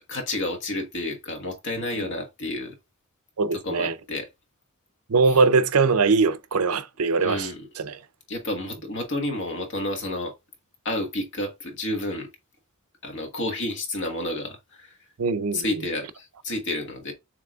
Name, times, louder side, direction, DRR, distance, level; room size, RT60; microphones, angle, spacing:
voice 1, 0.1-2.7 3.6-4.3 7.2-7.7 8.3-10.3 10.8-12.3 13.0-14.9 15.5-17.1, left 1 dB, 55° left, 1.4 m, -30 dB
voice 2, 3.4-4.0 5.1-7.5 7.8-8.0 15.2-15.8, right 4 dB, 85° right, 0.6 m, -22 dB
6.8 x 3.2 x 2.4 m
head